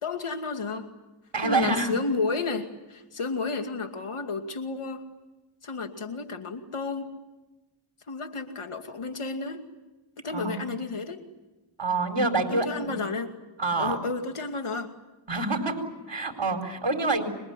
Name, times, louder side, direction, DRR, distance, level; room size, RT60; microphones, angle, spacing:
voice 1, 0.0-0.9 1.4-5.0 5.6-7.2 8.1-9.7 10.2-11.2 12.5-13.4 13.8-14.9, left 3 dB, 80° left, 6 dB, 2.5 m, -32 dB
voice 2, 1.3-1.9 10.3-10.7 11.8-12.9 13.6-14.0 15.3-17.2, right 3 dB, 55° right, 5 dB, 4.6 m, -27 dB
25.5 x 22.0 x 9.8 m, 1.1 s
cardioid pair, 40°, 49 cm